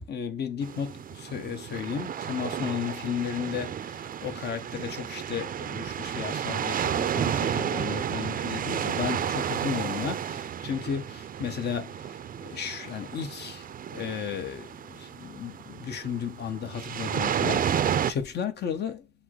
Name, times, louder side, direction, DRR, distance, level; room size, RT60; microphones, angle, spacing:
voice 1, 0.1-12.0 12.5-13.6 13.9-19.0, left 7 dB, 55° left, 1.0 m, -34 dB
sound 1, 0.6-18.1, right 9 dB, 45° right, 0.5 m, -32 dB
5.9 x 2.1 x 3.8 m
cardioid pair, 90°, 20 cm